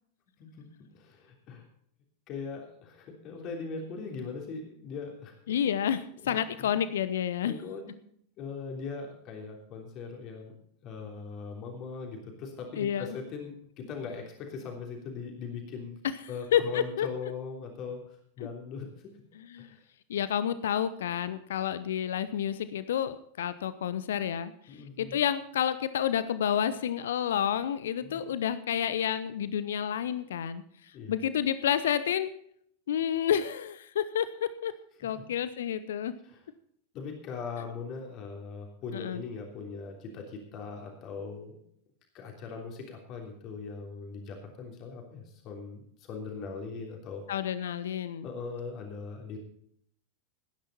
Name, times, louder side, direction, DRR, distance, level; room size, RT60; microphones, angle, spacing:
voice 1, 0.9-1.7 2.3-5.3 6.2-6.8 7.4-10.5 10.8-16.0 16.3-19.2 19.6-19.8 24.7-25.2 28.0-28.2 30.9-31.2 35.0-35.2 36.2-36.4 36.9-41.6 42.1-47.2 48.2-49.4, left 5 dB, 35° left, 1 dB, 3.2 m, -40 dB
voice 2, 5.5-7.5 12.8-13.1 16.5-17.1 19.4-19.7 20.1-24.5 25.0-30.6 31.1-32.3 32.9-34.7 35.0-36.1 38.9-39.2 47.3-48.3, left 9 dB, 60° left, 14 dB, 0.8 m, -29 dB
18.0 x 10.5 x 4.2 m, 0.66 s
figure-of-eight pair, 90°, 0 cm